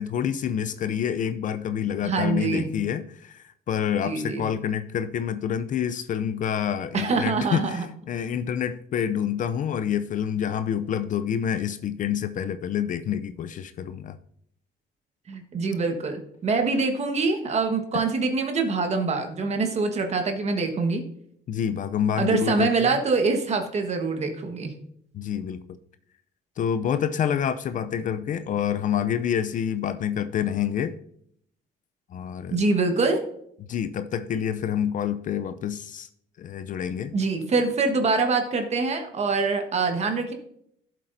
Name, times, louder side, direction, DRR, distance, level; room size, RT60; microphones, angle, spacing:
voice 1, 0.0-14.2 17.9-18.1 21.5-22.9 25.1-25.6 26.6-30.9 32.1-32.6 33.7-36.1 36.4-37.1, left 9 dB, 50° left, 12 dB, 0.5 m, -27 dB
voice 2, 2.0-2.7 4.0-4.5 6.9-7.8 15.3-21.0 22.1-24.7 32.5-33.2 37.1-40.3, right 4 dB, 40° right, 5 dB, 1.4 m, -24 dB
12.0 x 7.5 x 2.7 m, 0.69 s
cardioid pair, 110°, 17 cm